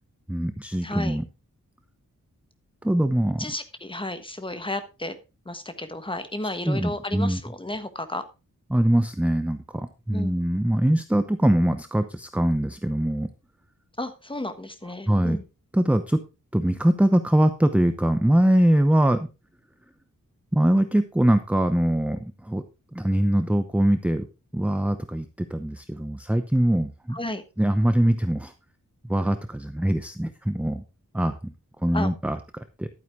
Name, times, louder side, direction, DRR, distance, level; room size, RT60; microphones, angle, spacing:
voice 1, 0.3-1.2 2.8-3.5 6.6-7.4 8.7-13.3 15.1-15.4 15.7-16.2 16.5-19.3 20.5-22.6 22.9-24.3 24.5-27.2 27.6-28.5 29.1-30.8 31.1-31.4 31.8-32.9, right 1 dB, 5° right, 9 dB, 0.7 m, -22 dB
voice 2, 0.8-1.2 3.4-5.2 5.4-8.2 10.1-10.4 14.0-15.4 27.1-27.4 31.9-32.1, left 1 dB, 15° left, 10 dB, 1.4 m, -33 dB
11.5 x 9.3 x 3.6 m, 0.28 s
wide cardioid pair, 130°, 32 cm